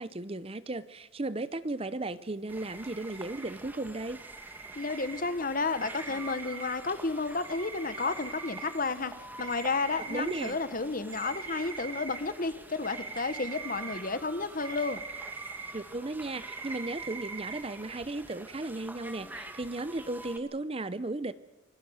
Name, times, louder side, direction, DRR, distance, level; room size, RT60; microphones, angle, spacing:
voice 1, 0.0-4.2 10.1-10.6 15.7-21.3, right 2 dB, 30° right, 15 dB, 0.7 m, -35 dB
sound 1, 2.5-20.4, right 1 dB, 10° right, 1.8 m, -47 dB
sound 2, 2.5-3.5 4.1-5.2 5.8-6.7 7.4-8.7 9.4-10.5 11.1-12.2 12.8-14.0 14.6-15.7 16.1-16.2 16.4-17.6, right 4 dB, 80° right, 3.0 m, -42 dB
voice 2, 4.7-9.1 9.4-15.0, left 3 dB, 45° left, 13 dB, 1.3 m, -32 dB
25.5 x 21.5 x 6.5 m, 0.99 s
head